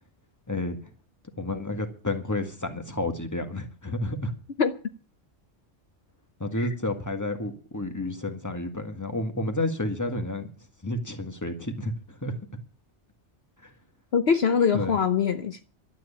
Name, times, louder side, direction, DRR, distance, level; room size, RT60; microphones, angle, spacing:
voice 1, 1.4-4.3 6.4-10.5 10.8-12.3 13.6-13.7 14.7-15.0, left 2 dB, 15° left, 1.8 m, -30 dB
voice 2, 14.1-15.6, left 6 dB, 60° left, 1.1 m, -23 dB
12.0 x 9.3 x 8.7 m
omnidirectional pair, 1.2 m